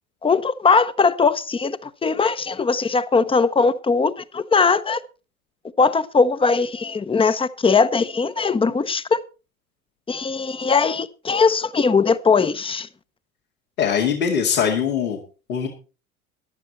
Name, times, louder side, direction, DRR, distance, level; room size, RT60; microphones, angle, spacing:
voice 1, 0.2-5.0 5.8-9.2 10.1-12.9, left 4 dB, 15° left, 0.8 m, -20 dB
voice 2, 13.8-15.2 15.5-15.7, left 7 dB, 80° left, 2.2 m, -21 dB
13.5 x 11.0 x 4.2 m
figure-of-eight pair, 70°, 42 cm